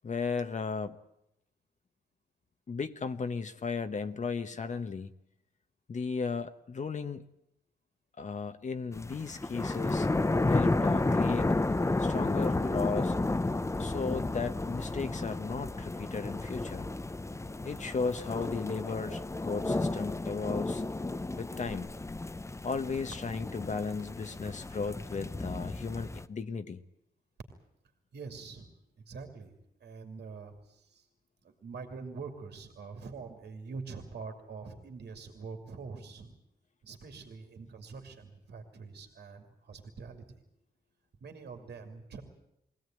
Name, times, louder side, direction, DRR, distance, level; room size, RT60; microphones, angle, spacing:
voice 1, 0.0-1.0 2.7-5.1 5.9-7.2 8.2-10.1 10.4-11.5 12.0-13.2 13.8-16.9 17.6-20.8 21.3-21.9 22.6-26.8, left 5 dB, 45° left, 9 dB, 1.0 m, -35 dB
sound 1, 8.9-26.2, left 2 dB, 15° left, 0.8 m, -32 dB
voice 2, 28.1-28.7 29.0-29.5 29.8-31.1 31.4-36.3 36.8-40.4 41.2-42.2, right 4 dB, 80° right, 5 dB, 2.8 m, -45 dB
22.0 x 17.0 x 9.1 m, 0.81 s
cardioid pair, 90°, 17 cm